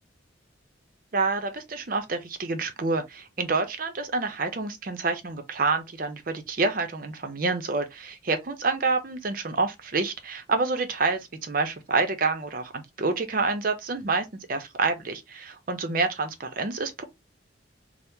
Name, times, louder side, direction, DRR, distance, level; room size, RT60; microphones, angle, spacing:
voice 1, 1.1-17.0, right 3 dB, 50° right, 0.6 m, -28 dB
2.8 x 2.0 x 3.5 m
head